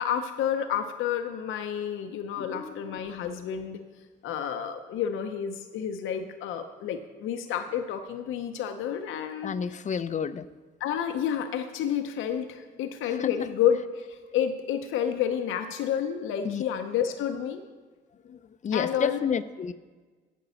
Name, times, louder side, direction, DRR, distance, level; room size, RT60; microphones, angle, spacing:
voice 1, 0.0-3.8 4.2-9.8 10.8-17.6 18.7-19.2, left 9 dB, 85° left, 6 dB, 0.7 m, -30 dB
voice 2, 2.4-3.0 9.4-10.5 13.2-13.3 16.4-16.6 18.3-19.7, left 7 dB, 40° left, 14 dB, 0.5 m, -30 dB
9.2 x 6.1 x 6.8 m, 1.4 s
cardioid pair, 90°, 20 cm